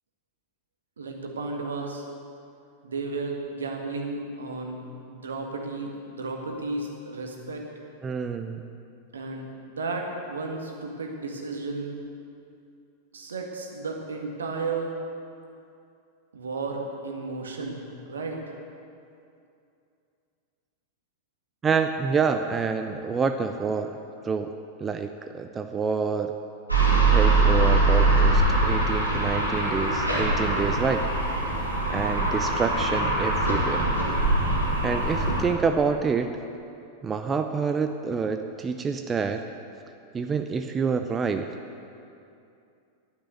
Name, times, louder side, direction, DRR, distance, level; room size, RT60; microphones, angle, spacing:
voice 1, 1.0-2.1 2.8-7.7 9.1-12.0 13.1-14.9 16.3-18.6, right 3 dB, 70° right, 2 dB, 1.7 m, -33 dB
voice 2, 8.0-8.6 21.6-24.0 24.2-24.5 24.8-26.3 27.1-31.1 31.9-33.9 34.8-36.4 37.0-39.4 40.1-41.5, right 5 dB, 20° right, 7 dB, 0.6 m, -27 dB
sound 1, 26.7-35.4, right 2 dB, 85° right, 2.7 m, -22 dB
11.5 x 9.7 x 8.0 m, 2.6 s
figure-of-eight pair, 90°, 0 cm